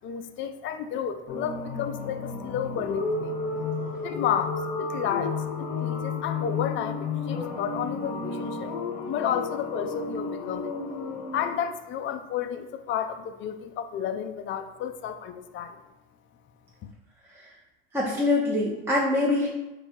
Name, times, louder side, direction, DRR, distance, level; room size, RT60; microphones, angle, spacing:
voice 1, 0.0-3.3 4.0-8.7 9.1-10.7 11.3-15.8 16.8-16.9, left 8 dB, 40° left, 9 dB, 0.4 m, -31 dB
sound 1, 1.3-11.6, left 4 dB, 65° left, 0.8 m, -32 dB
voice 2, 17.9-19.5, left 2 dB, 5° right, -4 dB, 0.6 m, -24 dB
3.9 x 2.2 x 4.5 m, 1.0 s
supercardioid pair, 95°, 32 cm